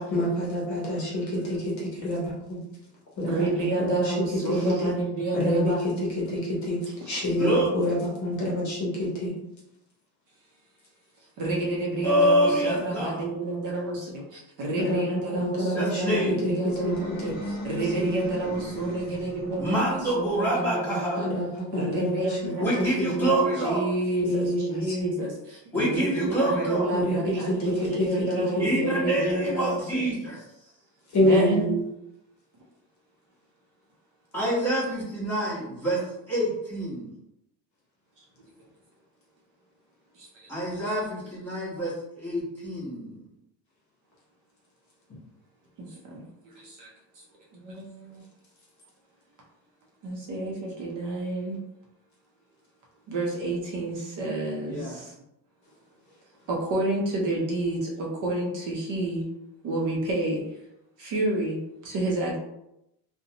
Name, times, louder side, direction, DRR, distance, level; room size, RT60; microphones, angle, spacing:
voice 1, 0.0-2.6 3.2-5.0 5.3-9.3 14.8-16.9 17.2-17.3 17.8-18.2 21.2-23.3 24.2-25.1 26.9-28.8 31.1-31.6, left 1 dB, 40° left, -4 dB, 0.9 m, -27 dB
voice 2, 3.3-6.0 7.1-7.2 11.4-21.3 21.7-30.1 31.2-31.8 38.2-38.5 40.1-40.5 45.8-46.9 47.2-47.3 47.5-48.2 50.0-51.6 53.1-55.1 56.5-59.3 59.6-60.4 61.0-62.4, right 2 dB, 45° right, -2 dB, 0.6 m, -29 dB
voice 3, 7.4-7.7 12.0-13.2 15.7-16.4 19.6-21.2 22.6-23.9 25.7-26.9 28.6-30.4 34.3-37.1 40.5-43.2 54.7-55.0, right 1 dB, 5° left, -9 dB, 1.0 m, -26 dB
sound 1, 16.7-19.6, equal, 25° left, 0.3 m, -37 dB
2.5 x 2.2 x 2.7 m, 0.83 s
cardioid pair, 160°, 45 cm